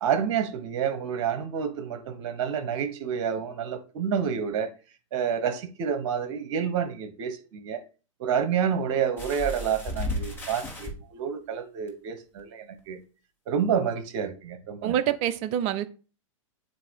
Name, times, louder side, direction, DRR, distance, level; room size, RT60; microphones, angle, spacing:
voice 1, 0.0-4.7 5.1-7.8 8.2-13.0 13.5-14.9, right 7 dB, 55° right, 1.2 m, -29 dB
sound 1, 9.2-10.9 11.9-12.0 12.4-12.5, left 1 dB, 15° left, 1.6 m, -33 dB
voice 2, 14.8-15.9, right 11 dB, 40° right, 0.6 m, -26 dB
7.6 x 2.8 x 4.7 m
hypercardioid pair, 115°, 17 cm